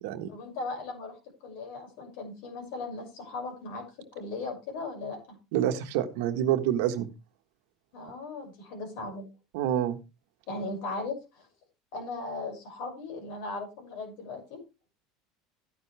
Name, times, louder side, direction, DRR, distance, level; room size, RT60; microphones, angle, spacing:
voice 1, 0.3-3.9 4.1-5.4 7.9-9.3 10.5-11.5 11.9-14.6, left 3 dB, 70° left, 2 dB, 6.4 m, -38 dB
voice 2, 5.5-7.1 9.5-10.0, right 11 dB, 75° right, 8 dB, 1.4 m, -27 dB
12.5 x 10.0 x 3.4 m, 0.28 s
supercardioid pair, 100°, 0 cm